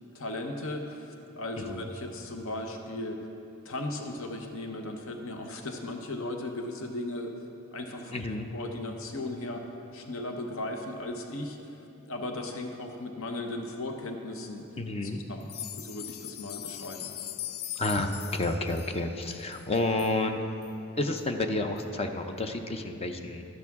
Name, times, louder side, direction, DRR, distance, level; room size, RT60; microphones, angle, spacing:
voice 1, 0.1-3.2 3.6-7.3 7.7-9.6 9.9-11.8 12.1-14.6 15.0-17.1, left 2 dB, 65° left, 4 dB, 0.8 m, -37 dB
voice 2, 1.6-1.9 8.1-8.5 14.8-15.2 17.8-20.4 21.0-23.4, left 2 dB, 25° left, 6 dB, 0.5 m, -30 dB
sound 1, 15.4-20.1 20.6-20.7 21.2-21.3 21.8-21.9, left 11 dB, 90° left, 0.5 m, -40 dB
13.0 x 10.5 x 3.6 m, 2.8 s
head